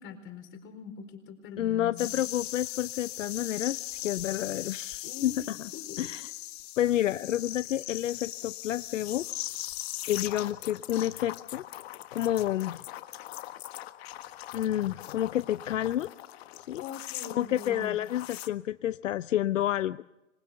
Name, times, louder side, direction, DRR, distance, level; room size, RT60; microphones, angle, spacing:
voice 1, 0.0-2.3 5.0-5.4 5.7-6.0 16.8-18.0, left 6 dB, 30° left, 8 dB, 4.4 m, -42 dB
voice 2, 1.6-5.7 6.0-6.3 6.8-9.3 10.1-11.7 12.1-12.8 14.5-16.1 16.7-16.8 17.3-20.0, left 12 dB, 70° left, 15 dB, 0.7 m, -29 dB
sound 1, 2.0-18.5, left 15 dB, 50° left, 1.5 m, -40 dB
26.0 x 20.5 x 6.9 m, 1.0 s
hypercardioid pair, 120°, 39 cm